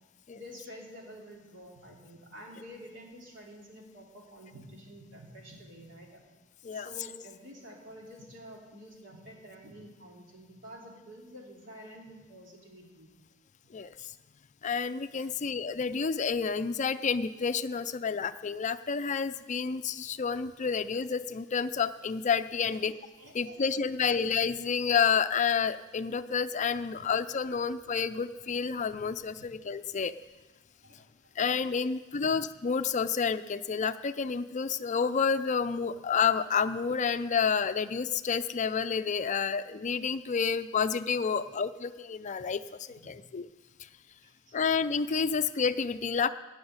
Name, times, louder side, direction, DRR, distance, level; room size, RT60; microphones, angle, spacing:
voice 1, 0.3-6.2 6.7-13.1 15.2-15.4 22.6-22.8 23.2-23.6 29.4-29.5 30.8-31.1 32.2-32.3 41.2-41.4 43.0-43.1 44.2-44.6, equal, 65° right, -1 dB, 3.2 m, -49 dB
voice 2, 13.7-14.1 14.6-22.9 23.3-30.1 31.4-42.6 42.9-43.5 43.8-43.9 44.5-46.3, left 6 dB, 40° left, 11 dB, 0.4 m, -29 dB
16.5 x 6.3 x 9.6 m, 1.2 s
head